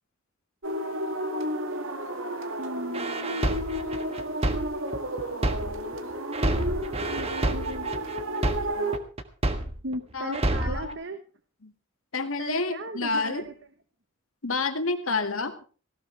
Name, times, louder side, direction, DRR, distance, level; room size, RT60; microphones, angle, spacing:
sound 1, 0.6-9.0, right 1 dB, 75° right, 2.2 m, -32 dB
voice 1, 2.6-3.6 7.1-8.5 9.8-11.2 12.4-13.5, right 1 dB, 60° right, 9 dB, 1.2 m, -37 dB
sound 2, 2.9-6.0 6.3-10.0 10.3-10.9, right 1 dB, 30° right, 1.5 m, -28 dB
voice 2, 10.1-11.0 11.6-11.7 12.1-13.4 14.4-15.6, left 3 dB, 85° left, 7 dB, 2.0 m, -29 dB
18.0 x 17.0 x 3.4 m, 0.36 s
head